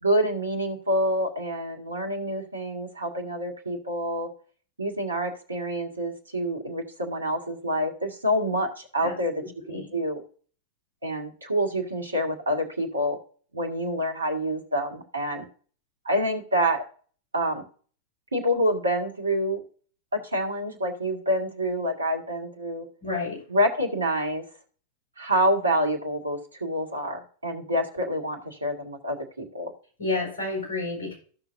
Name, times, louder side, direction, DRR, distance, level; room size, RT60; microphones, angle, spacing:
voice 1, 0.0-4.3 4.8-9.4 9.7-10.2 11.0-13.2 13.5-15.5 16.0-16.8 17.3-17.6 18.3-19.6 20.1-22.9 23.5-24.4 25.2-29.7, equal, 80° right, 3 dB, 2.0 m, -27 dB
voice 2, 23.0-23.4 30.0-31.2, left 3 dB, 65° left, -1 dB, 4.7 m, -30 dB
15.0 x 6.0 x 2.7 m, 0.43 s
figure-of-eight pair, 90°, 0 cm